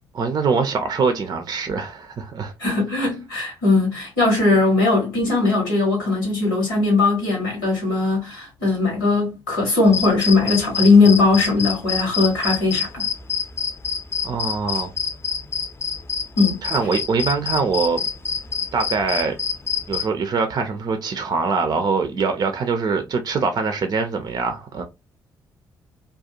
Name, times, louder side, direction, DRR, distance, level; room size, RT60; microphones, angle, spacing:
voice 1, 0.1-2.5 14.2-14.9 16.6-18.0 18.7-19.3 19.9-24.8, right 4 dB, 40° right, 0.5 m, -23 dB
voice 2, 2.6-13.1 16.4-16.6, left 3 dB, 85° left, 1.2 m, -19 dB
sound 1, 9.9-20.0, left 6 dB, 25° left, 0.7 m, -27 dB
2.4 x 2.2 x 2.7 m
figure-of-eight pair, 40°, 10 cm